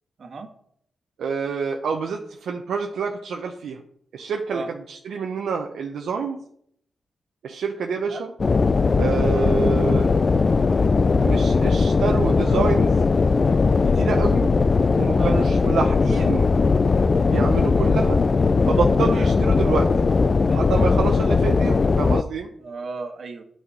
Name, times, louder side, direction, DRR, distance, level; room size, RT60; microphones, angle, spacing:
voice 1, 1.2-3.8 4.1-6.4 7.4-8.3 9.0-10.2 10.6-10.9 11.2-12.9 13.9-14.5 15.0-16.5 17.3-18.2 18.7-19.9 20.5-22.5, right 5 dB, 80° right, 2 dB, 0.7 m, -27 dB
sound 1, 8.4-22.2, left 4 dB, 40° left, 0.4 m, -19 dB
voice 2, 22.6-23.4, right 3 dB, 55° right, 5 dB, 1.4 m, -34 dB
8.2 x 5.7 x 5.0 m, 0.67 s
cardioid pair, 75°, 0 cm